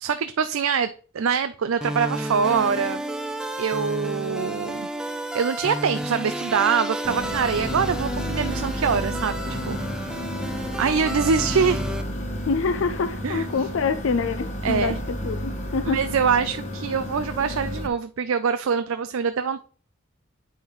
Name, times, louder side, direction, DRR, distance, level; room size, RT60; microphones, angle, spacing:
voice 1, 0.0-3.0 3.6-4.9 5.3-9.4 9.7-9.8 10.1-10.2 10.8-11.8 13.2-13.5 14.6-15.0 15.9-19.6, right 6 dB, 80° right, 0.4 m, -24 dB
sound 1, 1.8-12.0, right 1 dB, 5° right, 0.6 m, -31 dB
sound 2, 7.0-17.9, equal, 35° left, 1.2 m, -31 dB
voice 2, 12.5-16.0, left 4 dB, 65° left, 0.4 m, -26 dB
8.6 x 5.6 x 3.1 m
head